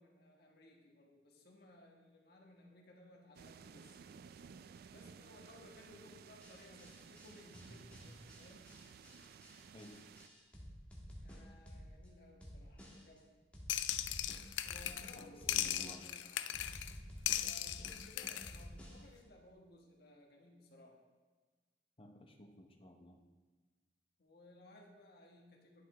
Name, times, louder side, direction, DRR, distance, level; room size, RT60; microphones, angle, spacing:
voice 1, 0.0-4.0 4.9-8.7 11.2-13.4 14.6-16.6 17.3-21.0 24.2-25.8, left 1 dB, 60° left, 0 dB, 1.4 m, -60 dB
sound 1, 3.3-10.3, right 6 dB, 55° right, 0.3 m, -56 dB
sound 2, 6.4-12.1 12.4-13.2 13.5-15.1 15.4-16.2 16.5-19.2, equal, 5° left, 1.4 m, -53 dB
sound 3, 13.7-15.2 15.5-16.9 17.3-18.6, left 12 dB, 85° left, 0.3 m, -38 dB
voice 2, 15.2-16.0 22.0-23.2, left 1 dB, 30° left, 3 dB, 0.8 m, -55 dB
11.0 x 5.6 x 3.3 m, 1.3 s
head